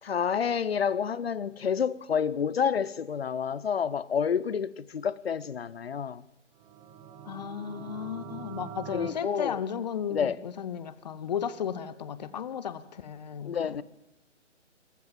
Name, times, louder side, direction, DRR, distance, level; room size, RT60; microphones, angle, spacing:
voice 1, 0.0-6.2 8.9-9.6 10.1-10.4 13.4-13.8, left 7 dB, 55° left, 0.9 m, -29 dB
sound 1, 6.5-9.1, right 9 dB, 10° right, 1.0 m, -43 dB
voice 2, 7.2-13.8, left 8 dB, 35° left, 1.1 m, -35 dB
27.0 x 14.5 x 7.5 m
figure-of-eight pair, 140°, 37 cm